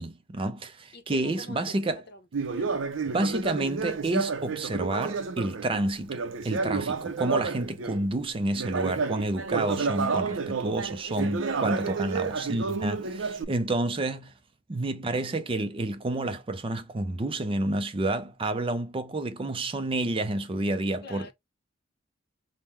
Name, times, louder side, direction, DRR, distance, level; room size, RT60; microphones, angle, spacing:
voice 1, 0.0-2.0 3.1-6.2 6.4-14.3 14.7-21.3, right 2 dB, 30° right, 0.4 m, -29 dB
voice 2, 0.9-2.9 11.8-12.3 21.0-21.3, left 3 dB, 55° left, 0.8 m, -47 dB
Conversation, 2.3-8.1 8.5-13.4, right 4 dB, 75° right, 0.6 m, -30 dB
3.6 x 2.1 x 4.2 m
head